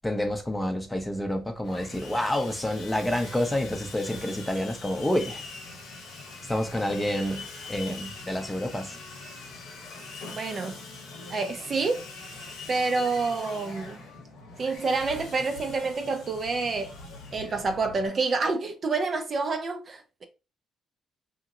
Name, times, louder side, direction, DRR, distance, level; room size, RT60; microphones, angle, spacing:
voice 1, 0.0-5.4 6.5-9.0, left 1 dB, 10° left, 0.6 m, -28 dB
Sawing, 1.6-18.1, left 3 dB, 90° left, 1.0 m, -43 dB
voice 2, 10.3-10.8 11.3-12.0 12.7-14.0 14.6-17.0 17.3-20.2, right 4 dB, 45° right, 0.6 m, -28 dB
2.9 x 2.7 x 2.4 m
cardioid pair, 90°, 0 cm